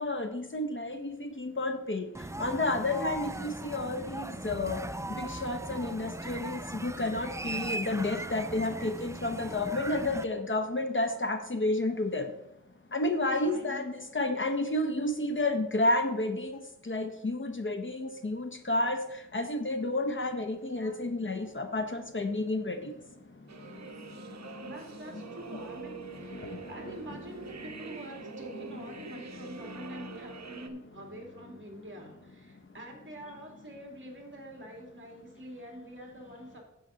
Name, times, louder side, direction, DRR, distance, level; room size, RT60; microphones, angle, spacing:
voice 1, 0.0-2.1 2.4-4.8 5.2-12.3 12.9-16.5 16.9-19.0 19.3-22.9 26.4-26.9, left 2 dB, 40° left, 7 dB, 0.8 m, -31 dB
sound 1, 2.1-10.2, right 2 dB, 10° right, 0.4 m, -38 dB
voice 2, 13.4-13.9 20.8-21.1 21.4-21.5 24.6-36.6, equal, 40° right, 1 dB, 2.4 m, -46 dB
sound 2, 23.5-30.7, right 5 dB, 60° right, 0.9 m, -45 dB
9.5 x 8.0 x 3.9 m, 0.86 s
wide cardioid pair, 90°, 31 cm